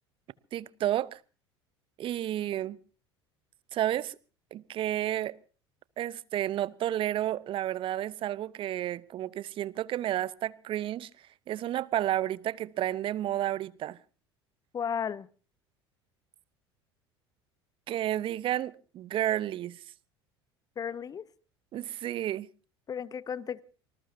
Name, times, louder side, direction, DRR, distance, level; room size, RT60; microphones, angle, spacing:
voice 1, 0.5-1.2 2.0-2.8 3.7-4.2 4.5-5.3 6.0-11.1 11.5-14.0 17.9-19.8 21.7-22.5, right 12 dB, 40° right, 0.8 m, -31 dB
voice 2, 14.7-15.3 20.8-21.3 22.9-23.6, left 7 dB, 25° left, 0.8 m, -34 dB
26.0 x 20.0 x 2.7 m
figure-of-eight pair, 70°, 14 cm